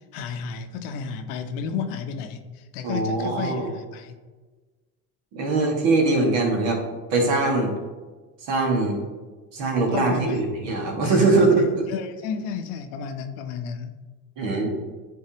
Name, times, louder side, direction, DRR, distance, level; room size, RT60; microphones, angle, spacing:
voice 1, 0.1-4.2 9.9-10.4 11.0-11.4 11.9-14.0, left 6 dB, 85° left, 7 dB, 0.8 m, -32 dB
voice 2, 2.8-3.7 5.3-6.8 7.1-7.8 8.5-9.0 9.5-11.8 14.4-14.7, right 3 dB, 70° right, 0 dB, 1.8 m, -22 dB
9.5 x 3.9 x 2.9 m, 1.3 s
supercardioid pair, 75°, 45 cm